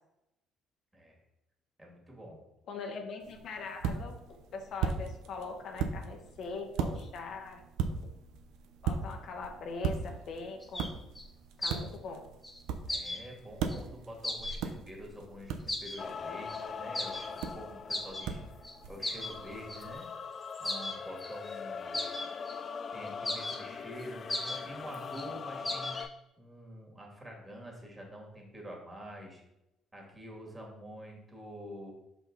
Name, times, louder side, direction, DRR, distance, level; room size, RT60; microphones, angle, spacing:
voice 1, 1.8-2.4 2.9-3.0 12.9-18.4 18.9-20.1 20.6-21.9 22.9-29.4 29.9-31.9, equal, 15° right, -1 dB, 2.3 m, -47 dB
voice 2, 2.7-7.6 8.8-10.9 11.6-12.2, left 4 dB, 60° left, 3 dB, 0.9 m, -41 dB
sound 1, 3.2-20.0, right 6 dB, 80° right, 0.6 m, -39 dB
sound 2, 10.6-10.9 11.1-11.2 11.6-11.8 12.4-12.6 12.9-13.2 13.7-13.8 14.2-14.6 15.7-16.0 16.5-16.6 16.9-17.5 17.9-18.3 18.6-18.7 19.0-20.0 20.5-21.5 21.9-22.5 23.1-23.6 24.0-24.1 24.3-24.6 24.9-25.2 25.6-26.0, left 1 dB, 15° left, 1.1 m, -36 dB
sound 3, 16.0-26.1, left 5 dB, 45° left, 0.4 m, -42 dB
5.7 x 4.6 x 4.0 m, 0.90 s
supercardioid pair, 85°, 0 cm